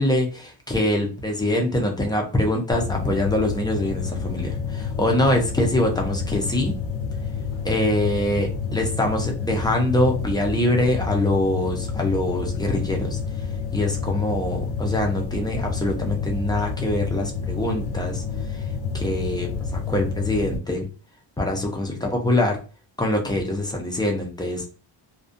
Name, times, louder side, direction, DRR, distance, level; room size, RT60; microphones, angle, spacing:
voice 1, 0.0-6.7 7.6-13.2 13.7-18.2 18.5-18.6 18.9-20.9 21.4-22.6 23.0-24.6, left 1 dB, 10° left, 1 dB, 0.3 m, -24 dB
sound 1, 2.7-20.6, left 5 dB, 75° left, 0.5 m, -29 dB
2.6 x 2.1 x 2.4 m, 0.37 s
wide cardioid pair, 175°, 49 cm